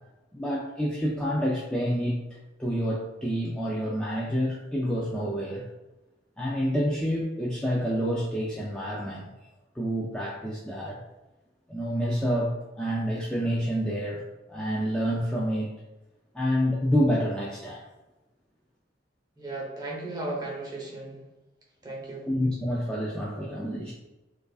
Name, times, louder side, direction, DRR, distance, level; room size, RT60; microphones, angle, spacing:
voice 1, 0.3-2.2 2.6-5.7 6.4-9.3 9.8-11.0 11.7-14.2 14.5-15.8 16.3-17.8 22.3-23.9, equal, 5° left, -5 dB, 0.3 m, -28 dB
voice 2, 19.4-21.2 21.8-22.3, right 2 dB, 20° right, -3 dB, 0.8 m, -35 dB
4.6 x 2.4 x 2.3 m, 1.1 s
head